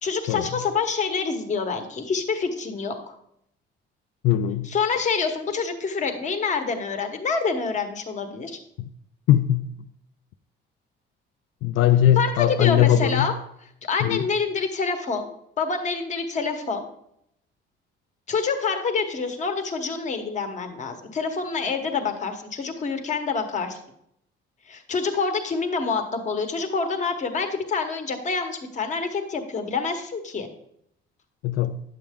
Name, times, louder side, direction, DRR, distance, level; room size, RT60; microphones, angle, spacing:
voice 1, 0.0-3.1 4.6-8.6 12.1-13.3 13.8-15.3 15.6-16.9 18.3-23.8 24.7-30.5, left 5 dB, 35° left, 1.1 m, -27 dB
voice 2, 4.2-4.7 8.8-8.9 9.3-9.7 11.6-13.3 14.0-14.3 31.4-31.8, left 11 dB, 80° left, 0.4 m, -20 dB
10.0 x 7.4 x 3.6 m
cardioid pair, 175°, 21 cm